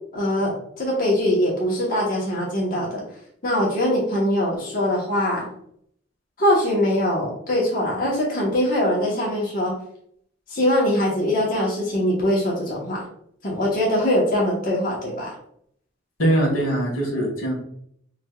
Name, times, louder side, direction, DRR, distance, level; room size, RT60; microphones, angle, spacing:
voice 1, 0.1-3.0 3.4-5.5 6.4-9.7 10.5-13.0 13.4-15.3, left 1 dB, 45° left, -4 dB, 1.1 m, -22 dB
voice 2, 16.2-17.6, right 1 dB, 85° left, -2 dB, 1.6 m, -22 dB
5.0 x 3.4 x 2.3 m, 0.67 s
head